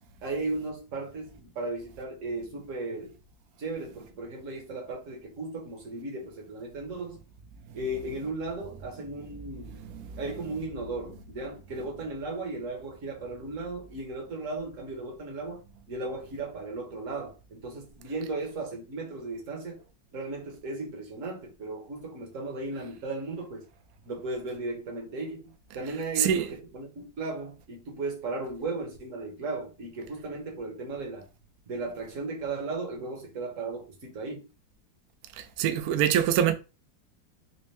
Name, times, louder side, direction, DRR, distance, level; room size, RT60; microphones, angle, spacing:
voice 1, 0.2-3.1 3.6-7.2 7.7-9.8 10.1-15.6 15.9-19.8 20.1-23.6 24.1-25.4 25.7-26.5 26.7-31.2 31.7-34.5, right 2 dB, 45° right, 1.3 m, -36 dB
voice 2, 26.2-26.5 35.4-36.5, right 9 dB, 85° right, 0.7 m, -25 dB
4.3 x 2.1 x 3.2 m
omnidirectional pair, 2.1 m